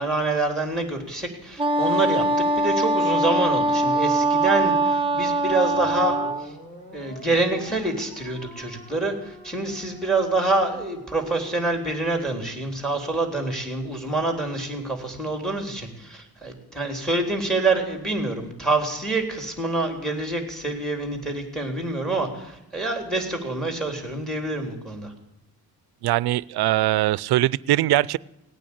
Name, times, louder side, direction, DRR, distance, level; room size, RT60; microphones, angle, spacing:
voice 1, 0.0-6.5 6.9-25.1, right 2 dB, ahead, 5 dB, 3.6 m, -26 dB
Wind instrument woodwind instrument, 1.6-6.5, right 2 dB, 15° right, 1.1 m, -22 dB
sound 1, 5.7-12.2, right 1 dB, 20° left, 6.6 m, -45 dB
voice 2, 26.0-28.2, right 15 dB, 80° right, 22 dB, 0.5 m, -21 dB
18.0 x 9.2 x 8.6 m, 0.91 s
cardioid pair, 100°, 37 cm